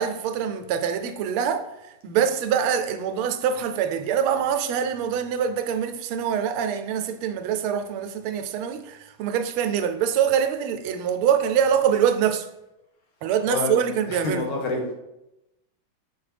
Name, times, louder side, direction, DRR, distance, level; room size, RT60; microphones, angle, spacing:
voice 1, 0.0-1.7 2.0-12.5 13.2-14.5, right 8 dB, 90° right, 1.5 m, -24 dB
voice 2, 13.5-14.9, left 2 dB, 75° left, 2.0 m, -28 dB
6.4 x 4.6 x 3.3 m
omnidirectional pair, 2.3 m